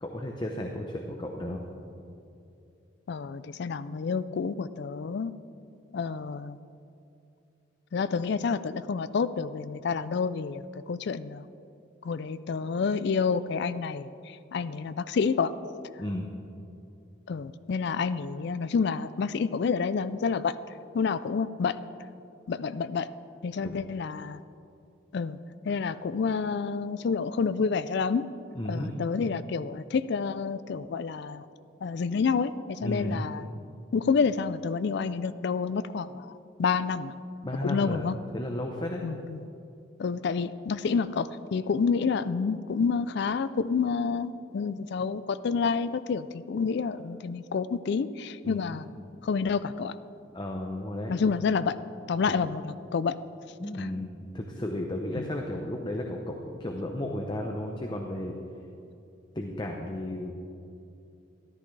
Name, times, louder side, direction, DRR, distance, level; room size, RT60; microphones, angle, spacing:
voice 1, 0.0-1.6 16.0-16.3 23.6-23.8 28.5-28.9 32.8-33.3 37.4-38.0 38.3-39.0 48.4-48.7 50.3-51.1 52.3-52.4 53.6-58.3 59.3-60.3, left 1 dB, 20° left, 1 dB, 0.7 m, -33 dB
voice 2, 3.1-5.3 5.9-6.6 7.9-11.5 12.0-15.5 17.3-20.6 20.9-21.8 22.5-23.1 23.4-24.4 25.1-28.3 28.7-31.5 31.8-33.5 33.9-37.1 37.6-38.1 39.0-39.5 40.0-48.9 49.2-50.0 51.1-51.7 52.1-53.2 53.8-53.9 55.2-55.3, left 5 dB, 55° left, 14 dB, 0.3 m, -29 dB
13.5 x 13.0 x 3.3 m, 2.6 s
head